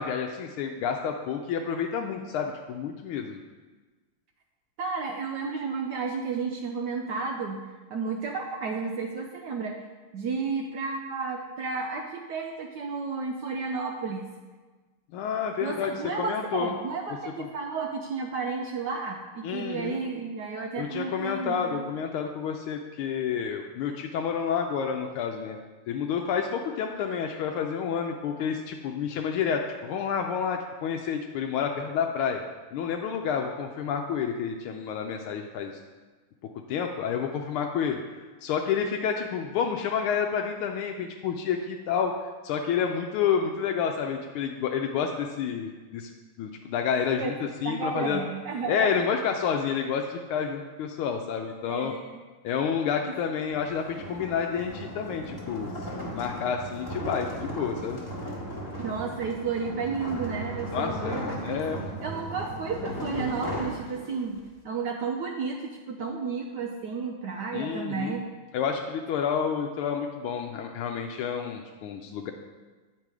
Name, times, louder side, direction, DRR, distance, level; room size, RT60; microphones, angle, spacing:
voice 1, 0.0-3.4 15.1-16.7 19.4-20.0 20.8-25.6 25.9-32.4 32.7-35.8 36.7-42.1 42.4-46.1 46.4-47.3 47.6-48.2 48.7-51.9 52.4-55.7 56.1-58.0 60.7-61.8 67.5-68.2 68.5-72.3, left 7 dB, 85° left, 3 dB, 1.5 m, -29 dB
voice 2, 4.8-7.6 7.9-9.8 10.1-14.3 15.6-21.8 47.2-47.3 47.6-49.0 51.7-52.2 53.0-53.1 58.8-61.6 62.0-68.3, right 4 dB, 75° right, 2 dB, 1.0 m, -32 dB
sound 1, 53.4-64.4, equal, 15° left, 1.1 m, -36 dB
9.0 x 5.3 x 4.7 m, 1.3 s
omnidirectional pair, 2.3 m